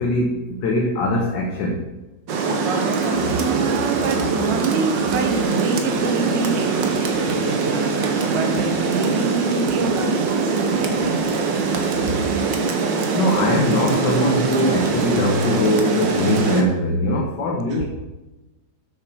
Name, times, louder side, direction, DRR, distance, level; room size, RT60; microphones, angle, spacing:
voice 1, 0.0-1.8 13.1-17.8, left 1 dB, 65° left, 0 dB, 1.8 m, -21 dB
Rain, 2.3-16.6, right 4 dB, 70° right, 1.8 m, -22 dB
voice 2, 3.3-11.3 11.6-11.8 17.7-17.8, right 4 dB, 45° right, 5 dB, 1.2 m, -27 dB
8.2 x 6.4 x 6.2 m, 1.0 s
omnidirectional pair, 2.1 m